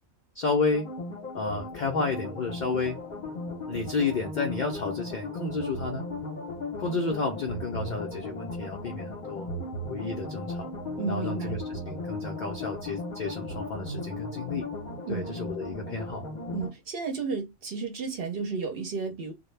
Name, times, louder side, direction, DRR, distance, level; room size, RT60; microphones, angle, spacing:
voice 1, 0.4-0.9 1.3-3.0 3.7-6.0 6.8-9.5 9.9-10.7 11.1-14.6 15.1-16.2, left 4 dB, 90° left, 0.4 m, -31 dB
sound 1, 0.7-16.7, left 2 dB, 45° left, 0.6 m, -36 dB
voice 2, 11.0-11.5 15.0-15.4 16.5-19.3, right 5 dB, 60° right, 0.7 m, -32 dB
2.2 x 2.1 x 3.1 m
omnidirectional pair, 1.4 m